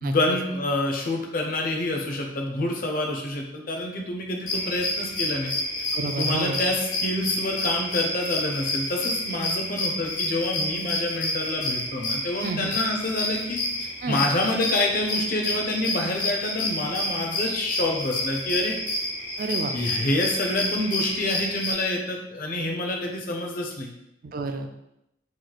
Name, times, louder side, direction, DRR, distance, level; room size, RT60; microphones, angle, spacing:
voice 1, 0.0-5.5 6.2-18.8 19.7-23.9, left 1 dB, 50° left, 1 dB, 0.5 m, -27 dB
sound 1, 4.5-21.7, left 1 dB, 90° left, 1.0 m, -29 dB
voice 2, 5.9-6.6 12.4-12.7 14.0-14.2 19.4-19.7 24.2-24.7, right 3 dB, 50° right, 6 dB, 0.3 m, -29 dB
3.1 x 2.3 x 3.9 m, 0.83 s
head